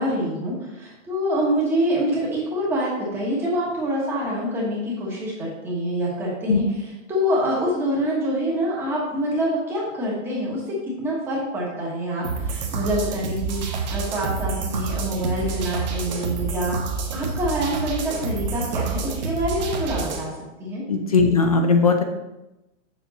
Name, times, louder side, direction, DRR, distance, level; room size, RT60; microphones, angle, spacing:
voice 1, 0.0-16.8 17.1-20.3 20.6-20.8, equal, 5° right, -5 dB, 1.2 m, -26 dB
sound 1, 12.2-20.2, right 4 dB, 35° right, 1.0 m, -28 dB
voice 2, 20.9-22.0, left 4 dB, 30° left, 5 dB, 0.5 m, -18 dB
7.3 x 7.2 x 4.1 m, 0.98 s
hypercardioid pair, 180°, 38 cm